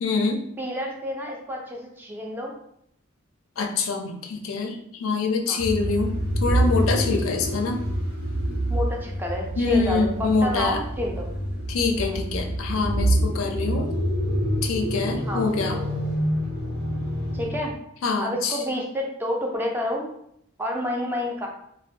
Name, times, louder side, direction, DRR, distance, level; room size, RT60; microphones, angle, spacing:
voice 1, 0.0-0.4 3.6-6.1 6.4-7.8 9.6-10.8 11.7-13.9 14.6-15.8 18.0-18.6, left 4 dB, 70° left, 4 dB, 0.4 m, -25 dB
voice 2, 0.6-2.5 5.5-5.6 8.7-11.3 12.0-12.2 15.3-15.5 17.3-17.8 18.2-20.1 20.6-21.5, left 1 dB, 10° right, 0 dB, 0.3 m, -29 dB
sound 1, 5.6-17.8, right 1 dB, 80° right, 1.1 m, -26 dB
2.4 x 2.1 x 2.6 m, 0.72 s
head